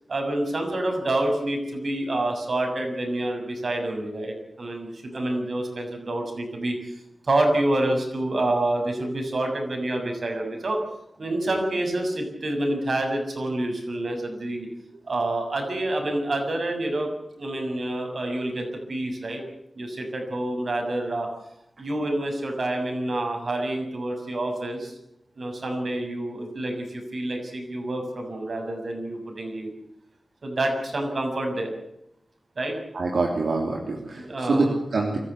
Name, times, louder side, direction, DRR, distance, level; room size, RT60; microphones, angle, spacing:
voice 1, 0.1-10.8 11.2-14.7 15.1-17.1 17.4-19.4 19.7-21.3 21.8-25.0 25.4-29.7 30.4-31.7 32.5-32.8 34.1-34.8, right 1 dB, 65° right, 3 dB, 6.7 m, -27 dB
voice 2, 32.9-35.2, right 3 dB, 85° right, 0 dB, 3.3 m, -25 dB
24.5 x 14.5 x 9.5 m, 0.81 s
wide cardioid pair, 65°, 0 cm